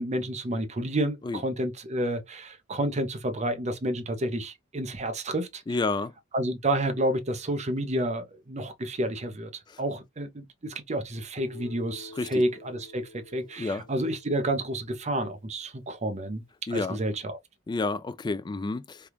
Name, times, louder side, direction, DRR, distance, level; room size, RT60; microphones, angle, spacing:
voice 1, 0.0-5.6 6.3-9.5 9.8-16.4 16.7-17.4, right 1 dB, 35° right, 0.7 m, -30 dB
voice 2, 5.7-6.1 9.7-9.8 12.2-12.4 13.6-13.8 16.7-17.0 17.7-19.1, left 3 dB, 20° left, 0.3 m, -30 dB
Guitar, 11.4-15.3, left 2 dB, 75° left, 1.2 m, -49 dB
3.4 x 2.4 x 2.8 m
head